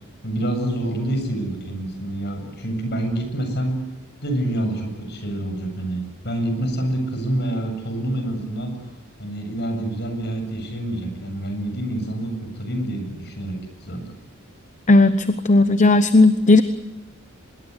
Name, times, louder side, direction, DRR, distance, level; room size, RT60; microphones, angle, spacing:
voice 1, 0.2-3.7 4.2-8.7 9.2-14.0, right 1 dB, 55° left, 5 dB, 7.6 m, -27 dB
voice 2, 14.9-16.6, left 2 dB, 35° left, 12 dB, 1.0 m, -15 dB
25.0 x 22.0 x 8.3 m, 1.0 s
head